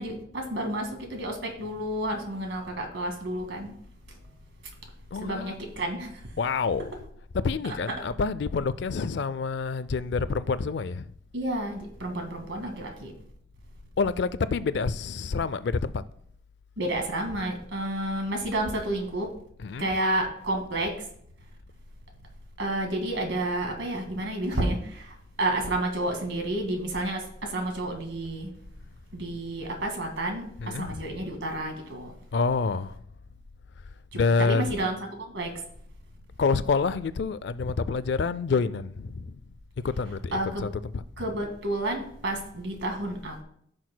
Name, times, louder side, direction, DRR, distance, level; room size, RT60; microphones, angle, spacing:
voice 1, 0.0-3.7 5.2-6.3 11.3-13.1 16.8-19.3 19.8-20.9 22.6-28.5 29.1-32.1 34.1-35.5 40.3-40.7 41.2-43.4, right 1 dB, 75° right, 1.9 m, -30 dB
voice 2, 5.1-5.6 6.4-7.1 7.3-11.1 14.0-16.0 19.6-19.9 30.6-31.2 32.3-33.0 34.1-34.7 36.4-39.4 39.8-41.3, left 4 dB, 65° left, 0.4 m, -28 dB
15.0 x 6.4 x 2.2 m
head